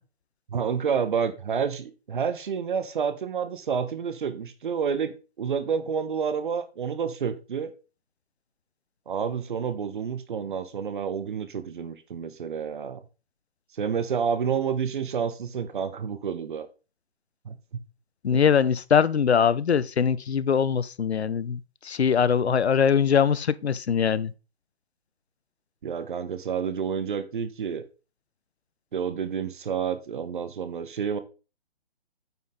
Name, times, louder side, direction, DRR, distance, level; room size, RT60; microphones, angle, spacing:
voice 1, 0.5-7.7 9.1-13.0 13.8-16.7 17.4-17.6 18.3-18.4 25.8-27.8 28.9-31.2, right 7 dB, 50° right, 1.3 m, -29 dB
voice 2, 18.2-24.3, left 7 dB, 80° left, 0.7 m, -22 dB
9.1 x 6.0 x 3.8 m
hypercardioid pair, 150°, 32 cm